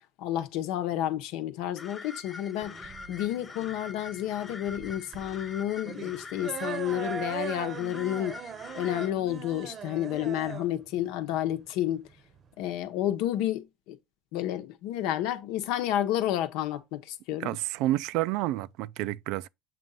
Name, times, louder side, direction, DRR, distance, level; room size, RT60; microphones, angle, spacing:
voice 1, 0.2-8.4 8.7-12.0 12.6-14.0 14.3-17.5, left 12 dB, 80° left, 0.9 m, -30 dB
sound 1, 1.8-9.1, left 4 dB, 25° left, 0.8 m, -44 dB
sound 2, 2.6-12.6, right 7 dB, 40° right, 0.7 m, -40 dB
voice 2, 17.4-19.5, right 16 dB, 80° right, 0.3 m, -30 dB
7.6 x 2.6 x 5.4 m
cardioid pair, 120°, 0 cm